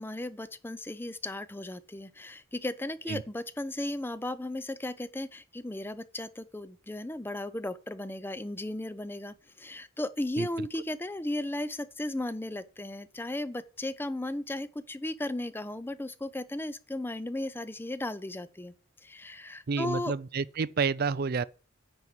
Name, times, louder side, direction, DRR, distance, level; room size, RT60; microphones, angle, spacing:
voice 1, 0.0-18.7 19.0-20.1, left 1 dB, 10° left, 0.5 m, -35 dB
voice 2, 19.7-21.4, right 5 dB, 45° right, 0.4 m, -29 dB
9.7 x 4.7 x 7.2 m
head